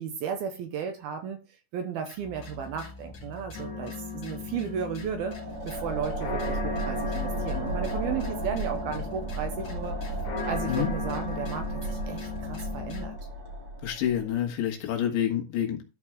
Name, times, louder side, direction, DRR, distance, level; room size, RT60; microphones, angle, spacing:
voice 1, 0.0-1.4 1.7-5.4 5.6-10.0 10.5-13.2, right 7 dB, 70° right, 2.5 m, -34 dB
sound 1, 2.1-13.1, left 4 dB, 40° left, 3.0 m, -46 dB
sound 2, 3.5-13.2, left 4 dB, 55° left, 1.5 m, -38 dB
sound 3, 5.0-14.3, right 1 dB, 35° right, 2.3 m, -34 dB
voice 2, 13.8-15.9, left 10 dB, 75° left, 3.7 m, -28 dB
12.5 x 4.6 x 3.7 m
omnidirectional pair, 5.1 m